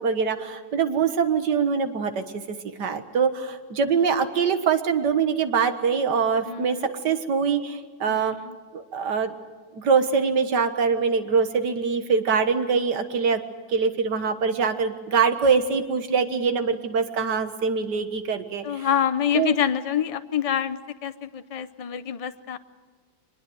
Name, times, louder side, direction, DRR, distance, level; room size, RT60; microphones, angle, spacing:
voice 1, 0.0-6.8 7.0-8.4 8.7-9.3 9.7-13.4 13.7-18.9 19.3-19.6, right 5 dB, 80° right, 9 dB, 2.0 m, -23 dB
voice 2, 6.5-6.9 8.1-8.6 18.6-22.6, left 9 dB, 40° left, 12 dB, 0.5 m, -27 dB
23.5 x 21.0 x 7.9 m, 1.5 s
omnidirectional pair, 1.8 m